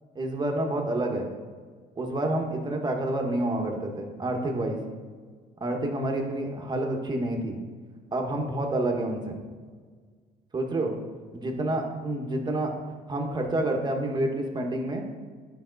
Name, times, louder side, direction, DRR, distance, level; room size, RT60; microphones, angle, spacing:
voice 1, 0.1-1.3 2.0-4.8 5.6-7.6 8.1-9.4 10.5-11.0 11.3-12.7 13.1-15.0, right 1 dB, 25° right, 2 dB, 1.4 m, -28 dB
10.0 x 5.3 x 4.0 m, 1.5 s
cardioid pair, 110°, 17 cm